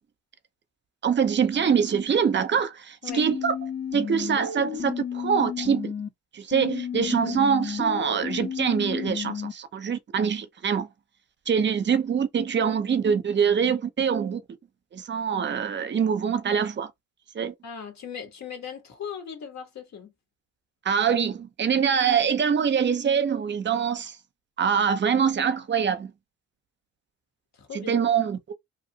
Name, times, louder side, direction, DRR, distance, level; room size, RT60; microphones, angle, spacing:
voice 1, 1.0-3.5 3.9-5.9 6.3-10.9 11.5-14.4 14.9-16.9 17.3-17.5 20.8-24.2 24.6-26.1 27.7-28.5, right 7 dB, 40° right, 0.7 m, -24 dB
sound 1, 3.1-6.1 6.5-9.5, left 7 dB, 35° left, 0.8 m, -32 dB
voice 2, 7.1-7.4 17.6-20.1 27.5-28.0, left 7 dB, 60° left, 1.5 m, -38 dB
2.7 x 2.5 x 2.8 m
cardioid pair, 90°, 30 cm